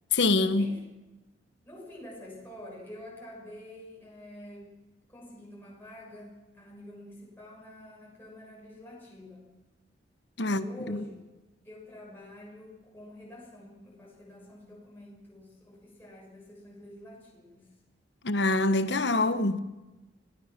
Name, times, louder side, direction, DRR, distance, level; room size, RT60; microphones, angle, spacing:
voice 1, 0.1-0.7 10.4-11.0 18.2-19.6, left 2 dB, 65° left, 1.1 m, -25 dB
voice 2, 1.6-4.7 5.1-9.5 10.4-11.2 11.6-17.7, left 1 dB, 10° left, 6.4 m, -47 dB
26.5 x 17.5 x 6.0 m
head